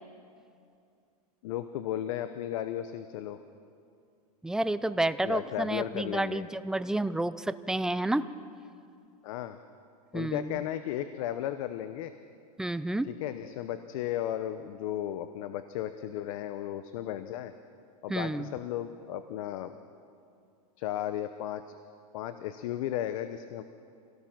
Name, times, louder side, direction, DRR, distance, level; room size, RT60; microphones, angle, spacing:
voice 1, 1.4-3.4 5.2-6.4 9.2-9.6 10.1-12.1 13.0-17.5 18.0-19.8 20.8-21.6 22.1-23.6, left 12 dB, 60° left, 10 dB, 1.0 m, -35 dB
voice 2, 4.4-8.3 10.1-10.5 12.6-13.1 18.1-18.5, right 1 dB, 5° right, 14 dB, 0.4 m, -30 dB
26.0 x 18.0 x 6.0 m, 2.4 s
supercardioid pair, 140°, 20 cm